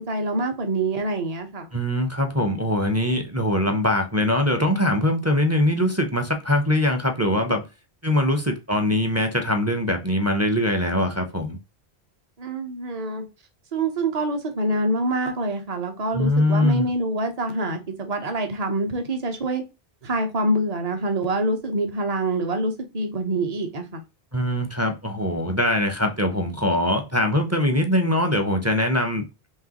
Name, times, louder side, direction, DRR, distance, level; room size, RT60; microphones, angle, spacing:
voice 1, 0.0-1.7 12.4-13.2 13.7-19.6 20.0-24.0, right 1 dB, 40° right, 0.9 m, -26 dB
voice 2, 1.7-7.6 8.0-11.6 16.1-16.9 24.3-29.5, left 1 dB, 20° right, 0.6 m, -22 dB
4.7 x 3.1 x 2.9 m
omnidirectional pair, 1.1 m